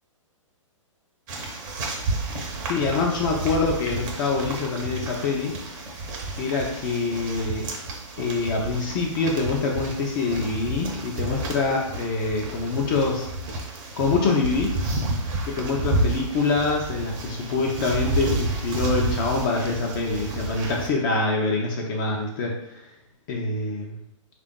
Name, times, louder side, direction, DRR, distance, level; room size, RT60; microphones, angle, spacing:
sound 1, 1.3-20.9, right 2 dB, 35° right, 0.7 m, -31 dB
voice 1, 2.6-5.5 6.4-7.6 8.2-13.3 14.0-14.8 15.4-22.5 23.3-24.0, left 3 dB, 40° left, 0 dB, 0.6 m, -25 dB
3.4 x 2.5 x 3.7 m, 0.80 s
hypercardioid pair, 135°, 17 cm